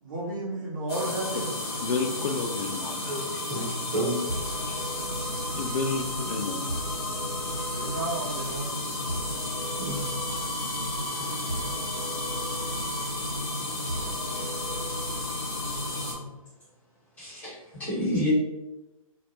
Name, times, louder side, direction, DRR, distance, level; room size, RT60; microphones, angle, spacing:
voice 1, 0.0-1.6 7.4-9.2, right 2 dB, 35° right, -3 dB, 0.6 m, -34 dB
sound 1, 0.9-16.1, left 2 dB, 45° left, 0.8 m, -33 dB
voice 2, 1.8-3.1 5.5-6.6, left 4 dB, 85° left, 5 dB, 0.4 m, -30 dB
voice 3, 3.5-4.2 9.8-10.1 17.2-18.3, equal, 10° left, -10 dB, 1.0 m, -30 dB
sound 2, 4.3-16.3, equal, 85° right, 0.7 m, -37 dB
2.2 x 2.0 x 2.8 m, 1.0 s
hypercardioid pair, 145°, 18 cm